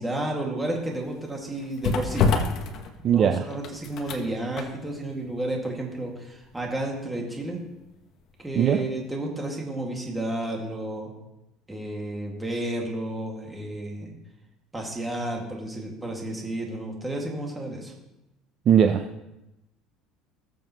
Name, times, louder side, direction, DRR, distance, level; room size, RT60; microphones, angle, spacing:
voice 1, 0.0-2.3 3.0-7.6 8.4-11.1 11.7-14.2 14.7-17.9, right 1 dB, 10° right, -1 dB, 2.1 m, -31 dB
sound 1, 0.6-8.5 8.9-9.0, left 5 dB, 45° left, 1.1 m, -30 dB
voice 2, 3.0-3.4 8.5-8.8 18.7-19.2, right 9 dB, 40° right, 6 dB, 0.5 m, -20 dB
19.5 x 7.1 x 3.0 m, 0.94 s
cardioid pair, 150°, 0 cm